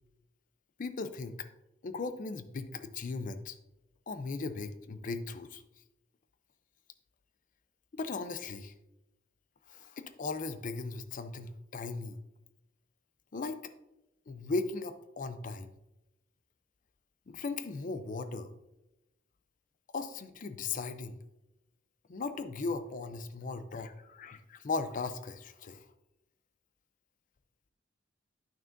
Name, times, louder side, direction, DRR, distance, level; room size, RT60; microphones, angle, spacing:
voice 1, 0.8-1.5 1.8-3.6 4.1-5.6 7.9-8.7 9.7-12.2 13.3-13.6 14.3-15.7 17.3-18.5 19.9-21.2 22.1-25.8, left 3 dB, 45° left, 11 dB, 0.5 m, -37 dB
9.2 x 6.2 x 2.6 m, 0.91 s
head